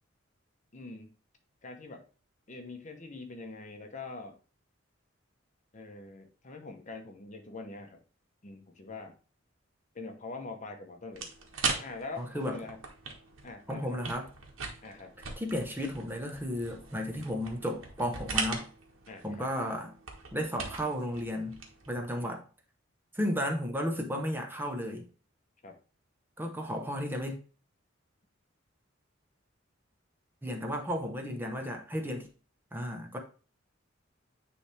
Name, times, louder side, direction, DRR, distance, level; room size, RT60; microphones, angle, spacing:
voice 1, 0.7-1.1 1.6-2.0 2.5-4.4 5.7-8.0 8.4-9.1 9.9-11.3 11.8-12.8 13.4-14.0 14.8-15.1 19.1-19.5 25.6-25.8, left 3 dB, 40° left, 5 dB, 1.0 m, -44 dB
sound 1, 11.1-22.3, right 5 dB, 85° right, 1.5 m, -40 dB
voice 2, 12.2-12.6 13.7-14.3 15.4-18.7 19.2-19.9 20.3-21.6 21.9-22.4 23.1-25.1 26.4-27.4 30.4-32.3 32.7-33.2, equal, 10° right, 2 dB, 1.0 m, -33 dB
9.6 x 3.5 x 3.3 m, 0.37 s
head